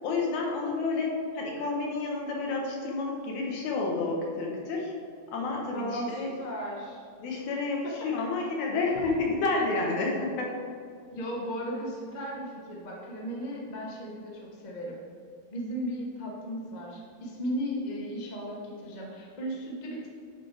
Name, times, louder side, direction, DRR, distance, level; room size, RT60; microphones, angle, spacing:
voice 1, 0.0-4.9 5.3-6.3 7.2-10.5, left 3 dB, 80° left, -1 dB, 2.7 m, -30 dB
voice 2, 5.7-7.0 7.5-7.6 7.8-8.3 11.1-15.0 15.5-20.1, equal, 50° left, -2 dB, 0.5 m, -36 dB
9.5 x 7.2 x 3.4 m, 2.3 s
omnidirectional pair, 3.4 m